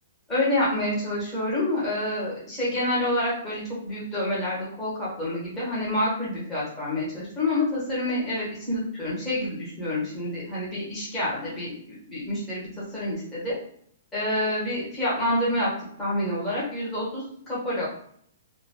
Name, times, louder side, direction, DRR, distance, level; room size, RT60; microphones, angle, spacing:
voice 1, 0.3-13.5 14.1-15.7 16.0-17.9, left 1 dB, 10° left, -8 dB, 1.2 m, -28 dB
2.5 x 2.2 x 3.0 m, 0.64 s
hypercardioid pair, 165°, 0 cm